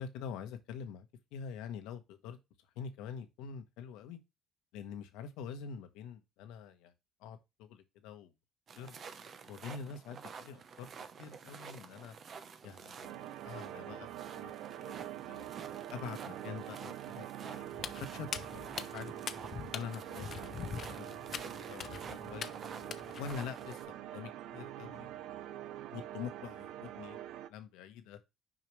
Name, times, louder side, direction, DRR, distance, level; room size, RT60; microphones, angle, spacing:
voice 1, 0.0-2.4 2.8-4.2 4.7-6.9 7.2-8.3 8.8-9.0 9.5-10.9 11.2-12.2 12.6-14.1 14.3-15.5 15.9-17.7 18.1-19.1 19.7-20.7 21.0-21.2 21.4-22.0 22.3-22.5 23.2-25.1 25.9-27.2 27.5-28.2, left 7 dB, 90° left, 1.1 m, -45 dB
sound 1, 8.7-23.8, right 6 dB, 50° right, 0.8 m, -51 dB
sound 2, 13.0-27.5, right 12 dB, 80° right, 0.5 m, -45 dB
Walk footsteps, 17.7-23.3, left 7 dB, 50° left, 0.7 m, -43 dB
6.2 x 5.0 x 3.2 m
cardioid pair, 85°, 0 cm